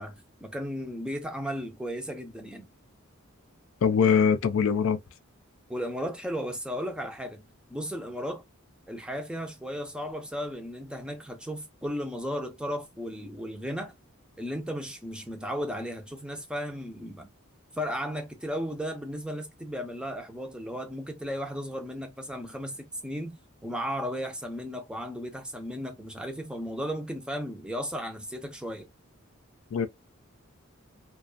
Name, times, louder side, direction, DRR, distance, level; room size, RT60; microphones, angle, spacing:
voice 1, 0.0-2.7 5.7-7.4 7.7-8.4 8.9-13.9 14.4-17.3 17.7-23.4 23.6-28.9, equal, 5° right, 0.5 m, -35 dB
voice 2, 3.8-5.0 29.7-29.9, left 6 dB, 75° left, 0.4 m, -22 dB
2.5 x 2.2 x 2.3 m
head